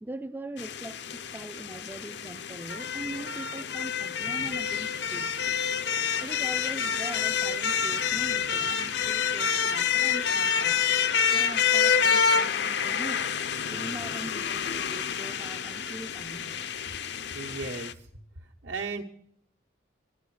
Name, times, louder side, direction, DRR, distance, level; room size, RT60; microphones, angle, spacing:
voice 1, 0.0-5.5 6.2-16.7 17.0-17.1, right 1 dB, 10° right, 0.3 m, -42 dB
sound 1, 0.6-17.9, left 7 dB, 65° left, 0.5 m, -28 dB
voice 2, 17.3-18.1 18.6-19.0, right 4 dB, 75° right, 1.1 m, -35 dB
11.5 x 10.5 x 4.7 m
head